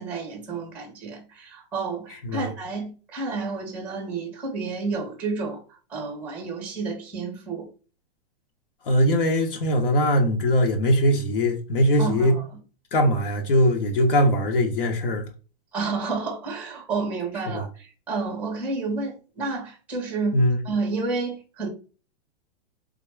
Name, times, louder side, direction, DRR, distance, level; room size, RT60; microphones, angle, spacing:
voice 1, 0.0-7.7 12.0-12.4 15.7-20.4 20.6-21.7, right 4 dB, 5° right, 0.6 m, -30 dB
voice 2, 8.9-12.3 12.9-15.3 17.5-17.6 20.3-20.6, equal, 70° left, 0.9 m, -21 dB
3.6 x 2.1 x 3.3 m
supercardioid pair, 170°, 29 cm